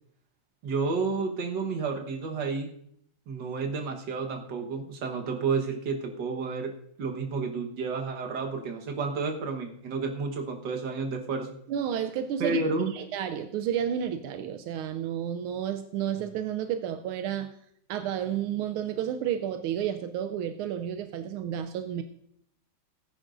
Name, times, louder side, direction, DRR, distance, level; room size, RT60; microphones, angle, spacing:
voice 1, 0.6-2.7 3.3-6.7 7.0-11.6 12.4-13.0, right 4 dB, 60° right, 2 dB, 1.9 m, -31 dB
voice 2, 11.7-12.6 12.9-17.5 17.9-22.0, right 9 dB, 85° right, 8 dB, 1.5 m, -31 dB
18.0 x 10.0 x 2.6 m, 0.69 s
omnidirectional pair, 2.3 m